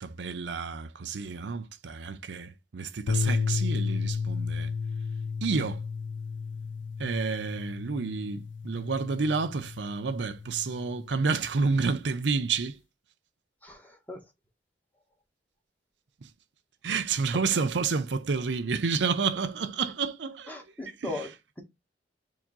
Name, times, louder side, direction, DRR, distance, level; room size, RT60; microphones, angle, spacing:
voice 1, 0.0-4.7 5.4-5.8 7.0-12.8 16.8-20.6 21.0-21.1, right 4 dB, 80° right, 0.6 m, -30 dB
sound 1, 3.1-11.5, left 5 dB, 85° left, 0.4 m, -33 dB
voice 2, 13.6-14.2 17.5-17.7 20.5-21.6, left 2 dB, 10° left, 1.2 m, -39 dB
4.6 x 2.8 x 3.9 m
head